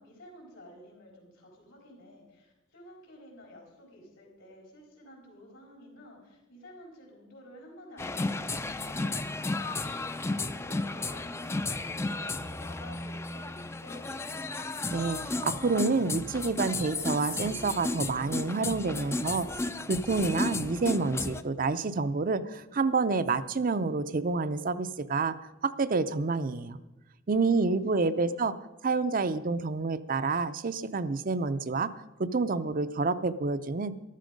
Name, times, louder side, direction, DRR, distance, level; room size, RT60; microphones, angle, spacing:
voice 1, 0.0-9.7 10.3-14.4 27.3-27.7 28.1-28.4, left 1 dB, 80° left, 0 dB, 4.3 m, -52 dB
sound 1, 8.0-21.4, left 2 dB, 15° left, 0.4 m, -33 dB
voice 2, 14.9-25.4 25.6-26.8 27.3-28.5 28.8-31.9 32.2-34.0, right 4 dB, 45° right, 13 dB, 0.6 m, -28 dB
14.0 x 12.0 x 5.2 m, 1.0 s
head